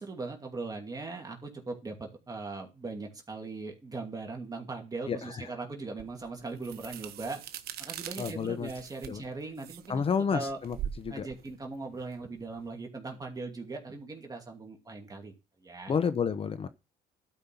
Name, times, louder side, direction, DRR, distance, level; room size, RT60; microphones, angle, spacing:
voice 1, 0.0-7.4 7.8-10.6 11.1-15.3 15.6-15.9, right 3 dB, 20° right, 2.5 m, -39 dB
voice 2, 5.1-5.5 8.2-8.7 9.1-9.2 9.9-11.3 15.9-16.7, left 6 dB, 35° left, 0.8 m, -30 dB
sound 1, 6.0-12.8, right 10 dB, 70° right, 1.1 m, -43 dB
12.0 x 5.6 x 5.6 m
cardioid pair, 110°, 17 cm